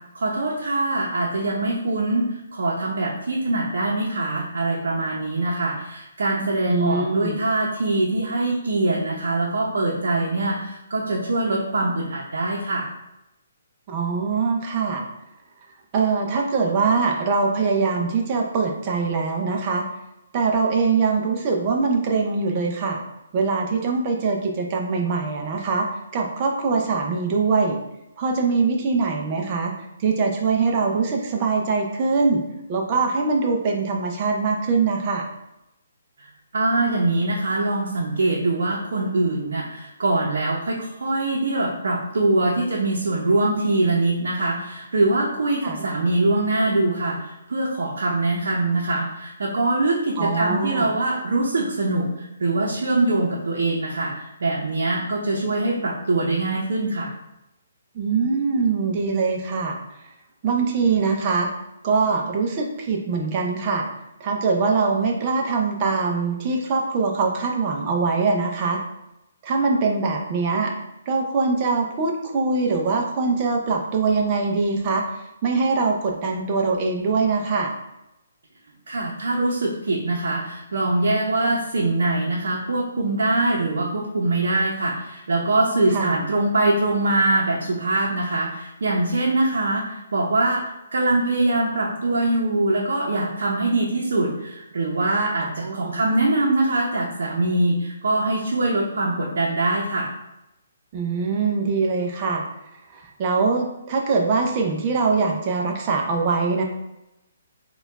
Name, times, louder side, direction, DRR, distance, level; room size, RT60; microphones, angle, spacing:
voice 1, 0.1-12.9 36.2-36.3 36.5-57.1 78.9-90.6 90.9-100.1, right 2 dB, 65° right, -4 dB, 0.7 m, -23 dB
voice 2, 6.7-7.4 13.9-15.0 15.9-19.8 20.3-23.0 23.3-25.9 26.1-27.8 28.2-29.7 30.0-32.4 32.7-35.3 45.6-45.8 50.2-51.0 57.9-59.8 60.4-61.5 61.8-63.8 64.2-68.8 69.4-70.7 71.1-75.0 75.4-77.7 85.9-86.2 95.4-96.0 100.9-102.4 102.9-106.6, right 4 dB, 20° right, 1 dB, 0.4 m, -23 dB
4.2 x 2.3 x 3.9 m, 0.90 s
hypercardioid pair, 180°, 0 cm